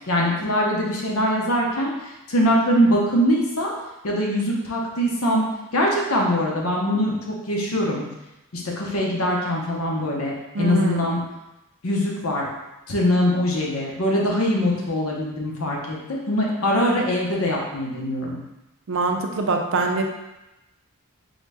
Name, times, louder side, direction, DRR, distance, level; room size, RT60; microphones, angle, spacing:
voice 1, 0.1-3.7 4.0-5.4 5.7-8.0 8.5-11.2 11.8-12.5 12.9-18.4, equal, 70° left, -2 dB, 0.9 m, -22 dB
voice 2, 10.5-11.0 18.9-20.0, right 3 dB, 60° right, 3 dB, 0.5 m, -23 dB
3.9 x 2.9 x 3.4 m, 0.98 s
head